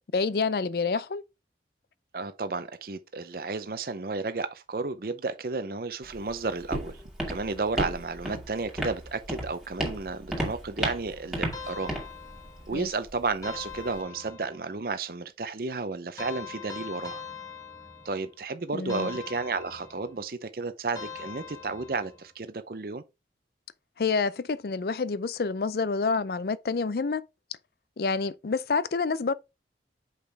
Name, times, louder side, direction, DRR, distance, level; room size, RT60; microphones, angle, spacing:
voice 1, 0.1-1.2 12.7-12.9 18.7-19.1 24.0-27.2 28.0-29.3, left 4 dB, 55° left, 0.4 m, -28 dB
voice 2, 2.1-7.0 7.3-11.9 12.7-17.2 18.0-23.0, right 3 dB, 55° right, 0.6 m, -32 dB
Walk footsteps, 6.0-14.0, right 1 dB, 5° right, 1.9 m, -35 dB
sound 1, 11.5-12.8 13.4-14.7 16.2-18.4 18.9-20.2 20.9-22.2, left 6 dB, 20° left, 1.2 m, -42 dB
6.5 x 5.3 x 3.5 m
head